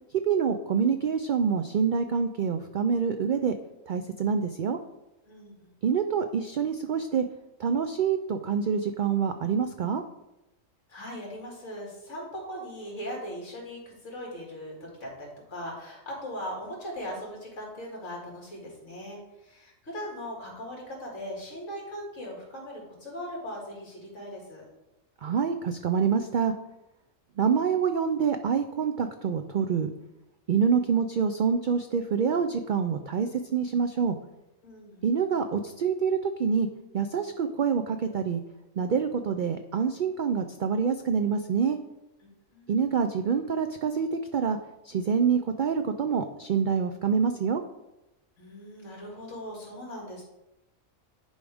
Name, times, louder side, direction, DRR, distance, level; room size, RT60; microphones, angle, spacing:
voice 1, 0.2-3.5 3.9-4.8 5.8-7.2 7.6-10.0 25.2-26.5 27.4-29.9 30.5-34.2 35.0-36.7 36.9-38.4 38.8-41.8 42.7-44.6 44.8-47.6, right 6 dB, 85° right, 7 dB, 0.4 m, -26 dB
voice 2, 5.3-5.7 10.9-24.6 34.6-35.0 42.2-42.7 48.4-50.2, equal, 65° left, -2 dB, 2.6 m, -39 dB
10.0 x 4.9 x 3.5 m, 0.93 s
omnidirectional pair, 1.4 m